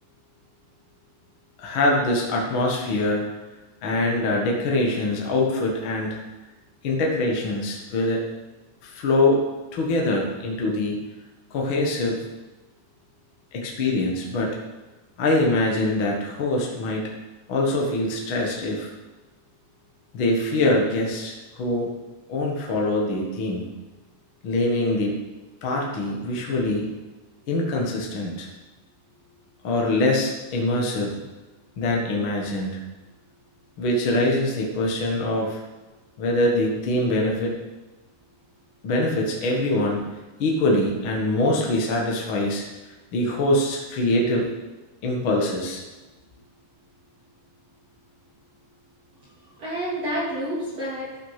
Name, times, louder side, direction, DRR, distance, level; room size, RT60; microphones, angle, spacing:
voice 1, 1.6-3.3 3.8-6.2 6.8-8.2 8.8-9.4 9.7-11.0 11.5-12.2 13.5-14.5 15.2-17.1 17.5-18.9 20.1-21.9 22.3-23.7 24.4-25.2 25.6-26.9 27.5-28.5 29.6-31.1 31.8-32.8 33.8-35.6 36.2-37.6 38.8-40.0 40.4-42.6 43.1-44.5 45.0-45.8, left 1 dB, 60° left, -1 dB, 1.3 m, -23 dB
voice 2, 49.2-51.2, equal, 45° right, -8 dB, 3.1 m, -30 dB
14.0 x 6.1 x 5.8 m, 1.1 s
omnidirectional pair, 4.8 m